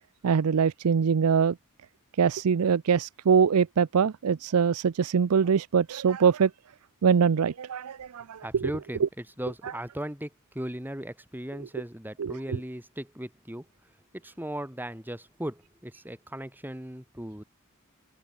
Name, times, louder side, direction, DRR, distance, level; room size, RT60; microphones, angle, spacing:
voice 1, 0.2-1.6 2.2-6.5 7.0-8.7 9.0-9.1 9.6-9.7 12.2-12.6, right 6 dB, 85° right, 0.5 m, -23 dB
voice 2, 8.4-9.1 9.4-10.3 10.5-13.6 14.1-17.4, right 1 dB, 10° right, 4.2 m, -37 dB
head